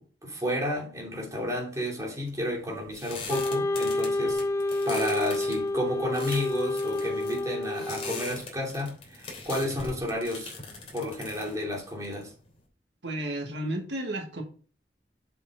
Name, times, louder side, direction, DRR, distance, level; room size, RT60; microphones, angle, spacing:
voice 1, 0.0-4.4 4.8-10.5 10.9-12.3, left 1 dB, 20° right, 2.9 m, -32 dB
sound 1, 2.2-12.6, left 3 dB, 35° left, 3.0 m, -42 dB
Wind instrument woodwind instrument, 3.3-8.4, left 2 dB, 20° left, 0.7 m, -29 dB
voice 2, 13.0-14.4, right 1 dB, 80° right, 1.9 m, -32 dB
7.3 x 7.0 x 3.8 m
head